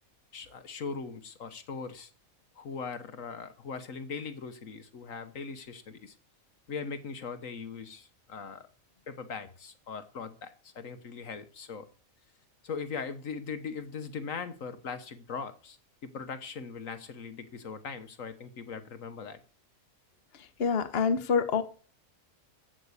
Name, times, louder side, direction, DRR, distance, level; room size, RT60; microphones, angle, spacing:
voice 1, 0.3-2.1 2.6-6.1 6.7-8.7 9.1-11.9 12.6-19.4, left 5 dB, 70° left, 1.5 m, -40 dB
voice 2, 20.6-21.6, left 5 dB, 45° left, 1.3 m, -26 dB
14.0 x 6.0 x 8.2 m
omnidirectional pair, 1.5 m